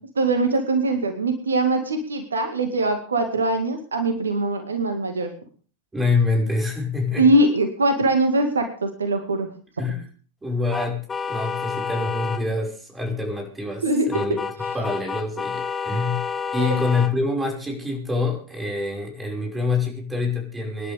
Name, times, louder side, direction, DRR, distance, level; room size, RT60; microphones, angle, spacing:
voice 1, 0.2-5.3 7.2-9.5 13.8-14.4 16.6-16.8, right 2 dB, 70° right, 6 dB, 2.1 m, -22 dB
voice 2, 5.9-7.3 9.8-10.0 10.4-14.5 14.7-20.9, left 3 dB, 10° right, 0 dB, 5.6 m, -26 dB
sound 1, 10.7-12.4 14.1-17.1, left 6 dB, 15° left, 1.0 m, -29 dB
25.0 x 11.0 x 3.6 m, 0.42 s
figure-of-eight pair, 90°, 0 cm